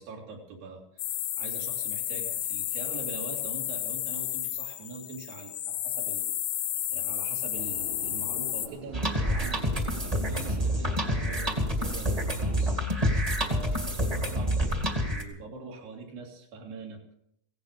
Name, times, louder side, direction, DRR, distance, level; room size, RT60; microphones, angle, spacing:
voice 1, 0.0-13.0 13.5-17.1, right 4 dB, 85° right, -1 dB, 4.8 m, -43 dB
sound 1, 1.0-8.7, left 12 dB, 70° left, 2.3 m, -32 dB
sound 2, 7.5-12.9, right 4 dB, 60° right, 2.2 m, -44 dB
sound 3, 8.9-15.2, equal, 15° right, 1.1 m, -28 dB
17.0 x 16.5 x 5.1 m, 0.71 s
omnidirectional pair, 4.7 m